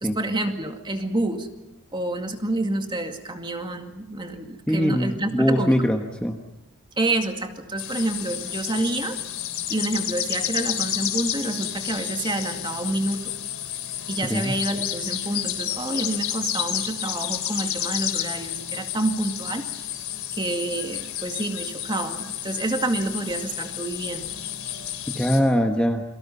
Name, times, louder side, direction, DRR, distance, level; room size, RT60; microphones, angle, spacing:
voice 1, 0.0-1.5 1.9-5.9 7.0-9.2 9.7-13.3 14.1-19.6 20.3-24.3, right 2 dB, 20° right, 5 dB, 2.2 m, -28 dB
voice 2, 4.7-6.4 14.3-14.6 25.1-26.0, equal, 5° left, 3 dB, 1.3 m, -22 dB
sound 1, 7.8-25.4, left 11 dB, 75° left, 3.5 m, -31 dB
29.5 x 24.0 x 5.7 m, 0.93 s
head